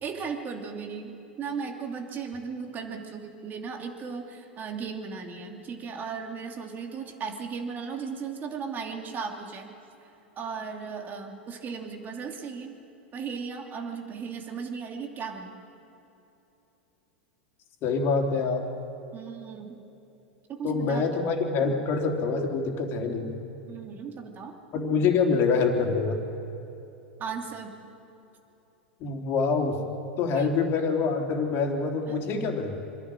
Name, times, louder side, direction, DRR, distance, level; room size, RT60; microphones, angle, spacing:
voice 1, 0.0-9.7 10.4-12.7 13.1-15.6 19.1-19.8 20.5-21.1 23.7-24.6 27.2-27.7 30.3-30.6 32.1-32.2, right 5 dB, 30° right, 3 dB, 2.9 m, -36 dB
voice 2, 17.8-18.6 20.6-23.3 24.7-26.2 29.0-29.8 30.2-32.8, left 4 dB, 40° left, 2 dB, 3.3 m, -25 dB
26.0 x 11.5 x 9.1 m, 2.9 s
hypercardioid pair, 95°, 6 cm